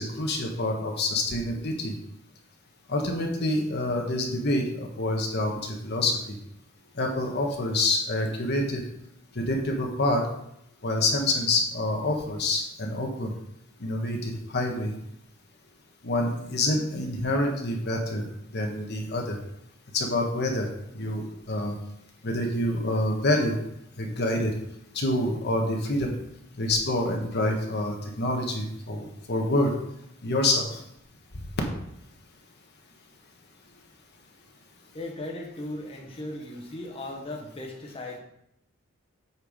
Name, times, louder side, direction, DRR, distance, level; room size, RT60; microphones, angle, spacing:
voice 1, 0.0-2.0 2.9-6.4 6.9-8.8 9.3-10.3 10.8-13.3 13.8-14.9 16.0-18.2 18.5-19.4 19.9-20.7 20.9-21.8 22.2-23.6 24.0-24.5 24.9-26.2 26.6-29.8 30.2-30.8, left 1 dB, 50° left, 2 dB, 1.2 m, -27 dB
voice 2, 34.8-38.2, left 1 dB, 25° left, -1 dB, 1.2 m, -38 dB
8.3 x 4.6 x 5.1 m, 0.79 s
head